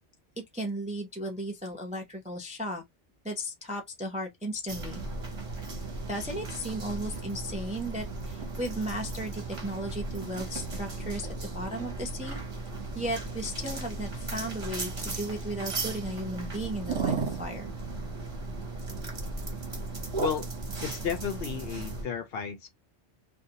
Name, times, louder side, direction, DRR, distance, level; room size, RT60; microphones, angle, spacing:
voice 1, 0.4-2.8 3.2-5.0 6.1-11.3 11.5-12.4 13.0-17.7, right 1 dB, 10° right, 0.4 m, -35 dB
sound 1, 4.7-22.0, right 3 dB, 30° right, 0.8 m, -36 dB
voice 2, 20.2-20.5 20.8-22.7, left 7 dB, 65° left, 0.8 m, -33 dB
2.5 x 2.1 x 2.8 m
omnidirectional pair, 1.2 m